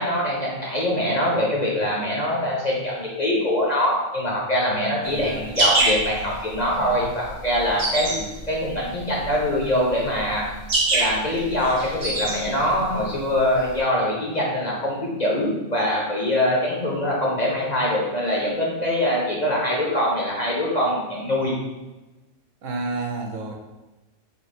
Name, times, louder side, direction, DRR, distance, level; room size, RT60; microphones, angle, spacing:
voice 1, 0.0-8.1 8.5-10.4 10.9-21.5, left 1 dB, 40° left, -4 dB, 0.7 m, -23 dB
sound 1, 5.0-13.8, right 2 dB, 45° right, 1.0 m, -25 dB
voice 2, 5.1-5.6 8.0-8.3 22.6-23.5, right 3 dB, 75° right, 2 dB, 1.0 m, -31 dB
3.3 x 2.7 x 4.2 m, 1.1 s
omnidirectional pair, 1.3 m